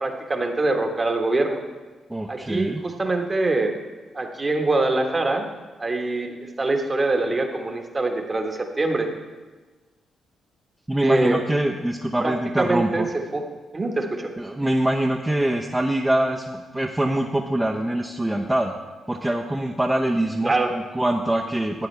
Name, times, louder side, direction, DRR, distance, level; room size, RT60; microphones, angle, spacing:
voice 1, 0.0-1.6 2.3-3.7 4.1-5.5 5.8-9.1 11.0-11.4 12.2-13.1 13.3-13.4 13.7-14.3 20.4-20.7, right 2 dB, 35° right, 4 dB, 1.5 m, -24 dB
voice 2, 2.1-2.8 10.9-13.1 14.4-18.7 19.1-21.9, right 1 dB, 15° right, 0 dB, 0.8 m, -24 dB
13.0 x 9.0 x 3.4 m, 1.3 s
hypercardioid pair, 45°, 0 cm